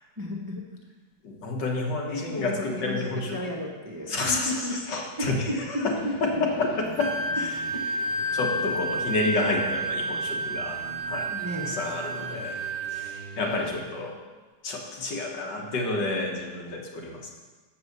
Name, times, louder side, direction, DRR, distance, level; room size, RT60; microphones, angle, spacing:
voice 1, 0.2-0.7 2.1-3.0 3.3-4.8 5.2-6.4 11.3-11.8, equal, 20° right, -1 dB, 0.5 m, -33 dB
voice 2, 1.2-3.4 4.1-5.9 6.2-6.7 7.0-7.1 8.3-11.3 11.7-12.6 12.9-14.2 14.6-17.3, left 2 dB, 70° left, 0 dB, 1.9 m, -29 dB
sound 1, 6.0-13.9, left 2 dB, 35° left, 1.2 m, -45 dB
Wind instrument woodwind instrument, 7.0-13.1, right 1 dB, 60° right, 0.6 m, -30 dB
7.7 x 5.5 x 6.6 m, 1.3 s
omnidirectional pair, 2.0 m